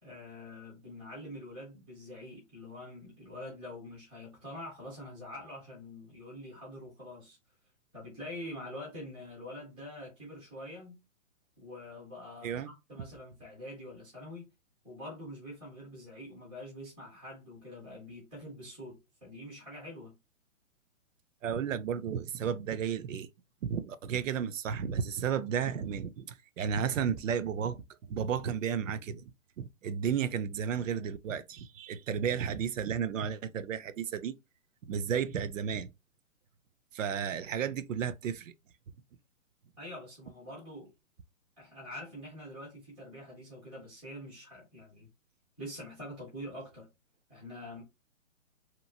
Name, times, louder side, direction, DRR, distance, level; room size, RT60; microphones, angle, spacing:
voice 1, 0.0-7.4 7.9-11.0 11.6-14.5 14.8-20.2 39.8-40.9 41.6-45.1 45.6-46.9 47.3-47.8, left 1 dB, ahead, 0.3 m, -45 dB
voice 2, 21.4-23.3 23.6-27.8 28.1-29.3 29.6-34.3 34.8-35.9 36.9-38.5, right 7 dB, 70° right, 0.5 m, -33 dB
2.9 x 2.4 x 2.6 m
hypercardioid pair, 135°, 40 cm